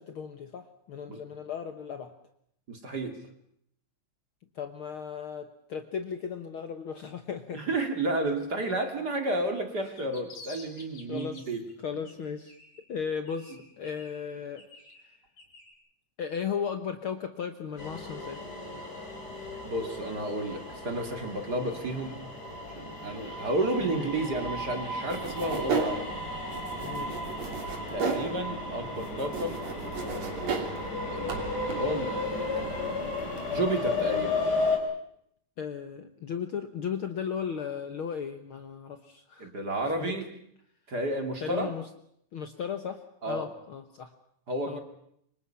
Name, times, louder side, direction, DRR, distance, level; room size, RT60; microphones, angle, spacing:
voice 1, 0.0-2.1 4.6-7.6 9.8-10.0 11.1-11.5 11.8-12.5 12.9-14.7 16.2-18.4 23.8-24.1 26.8-27.3 35.6-39.5 40.0-40.2 41.4-41.9 42.3-44.1 44.7-44.8, left 7 dB, 60° left, 8 dB, 1.6 m, -36 dB
voice 2, 2.7-3.2 7.5-11.6 19.6-22.1 22.8-26.1 27.9-29.6 30.0-30.7 31.0-31.4 31.7-32.2 32.6-32.9 33.5-34.4 39.4-40.2 40.9-41.7 43.2-43.5 44.5-44.8, right 1 dB, 35° right, 5 dB, 2.7 m, -31 dB
sound 1, 9.8-11.7 12.1-13.0 13.3-15.7, left 3 dB, 80° left, 5.0 m, -51 dB
sound 2, 17.8-34.8, left 2 dB, 30° left, 4.6 m, -34 dB
sound 3, 25.1-33.5, right 4 dB, 65° right, 4.1 m, -35 dB
27.5 x 25.0 x 5.7 m, 0.72 s
omnidirectional pair, 3.3 m